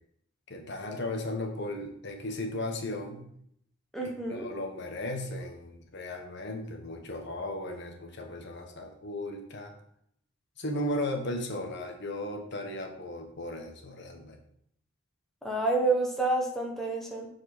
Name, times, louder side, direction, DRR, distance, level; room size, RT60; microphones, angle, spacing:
voice 1, 0.5-3.3 4.0-9.7 10.6-14.4, left 1 dB, 60° left, 3 dB, 1.4 m, -36 dB
voice 2, 3.9-4.5 15.4-17.3, right 2 dB, ahead, -2 dB, 1.4 m, -28 dB
7.7 x 4.8 x 6.1 m, 0.68 s
head